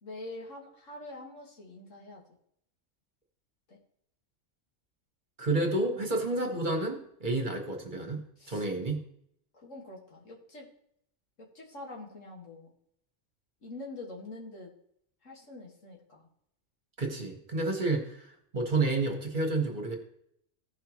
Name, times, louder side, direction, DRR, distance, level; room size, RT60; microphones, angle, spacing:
voice 1, 0.0-2.2 3.7-3.8 8.4-8.6 9.5-10.7 11.4-12.7 13.6-14.7 15.2-16.3, left 2 dB, 90° left, -2 dB, 2.2 m, -45 dB
voice 2, 5.4-9.0 17.0-18.3 18.5-20.0, right 2 dB, 40° right, 2 dB, 1.6 m, -30 dB
16.0 x 5.7 x 3.1 m, 0.70 s
omnidirectional pair, 1.3 m